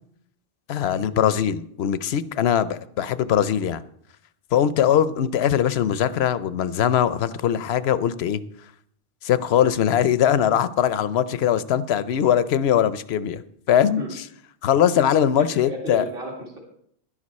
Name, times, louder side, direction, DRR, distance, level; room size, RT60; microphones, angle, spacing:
voice 1, 0.7-3.8 4.5-8.4 9.2-13.4 13.7-14.0 14.6-16.0, left 9 dB, 85° left, 15 dB, 0.9 m, -21 dB
voice 2, 15.4-16.6, right 1 dB, 60° right, 0 dB, 2.6 m, -34 dB
11.5 x 11.0 x 4.2 m, 0.68 s
omnidirectional pair, 1.0 m